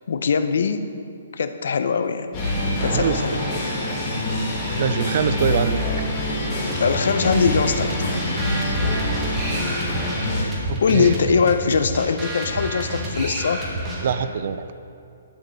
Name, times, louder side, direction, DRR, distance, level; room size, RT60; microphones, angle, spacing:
voice 1, 0.1-0.9 1.3-2.3 2.8-3.5 6.7-8.5 10.4-13.6, left 5 dB, 65° left, 10 dB, 0.7 m, -22 dB
sound 1, 2.3-10.4, left 1 dB, 25° left, 2.6 m, -25 dB
voice 2, 2.9-3.4 4.4-4.5 4.8-5.8 10.7-11.5 14.0-14.7, right 8 dB, 45° right, 12 dB, 0.5 m, -24 dB
sound 2, 6.7-14.3, right 1 dB, 10° right, 1.6 m, -30 dB
12.0 x 8.8 x 4.0 m, 2.7 s
hypercardioid pair, 165°, 0 cm